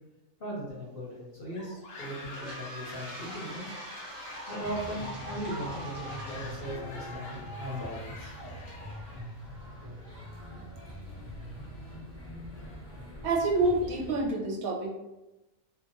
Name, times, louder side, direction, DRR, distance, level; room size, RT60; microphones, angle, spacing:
voice 1, 0.4-3.7 4.5-8.3, equal, 50° left, -6 dB, 0.7 m, -38 dB
sound 1, 1.5-9.4, left 1 dB, 70° left, 1.0 m, -44 dB
Toilet flush, 2.2-10.1, right 1 dB, 55° right, 0.7 m, -47 dB
sound 2, 4.6-14.3, equal, 15° left, 0.6 m, -44 dB
voice 2, 13.2-14.9, right 2 dB, 75° right, -1 dB, 1.0 m, -27 dB
2.8 x 2.2 x 2.5 m, 1.0 s
omnidirectional pair, 1.5 m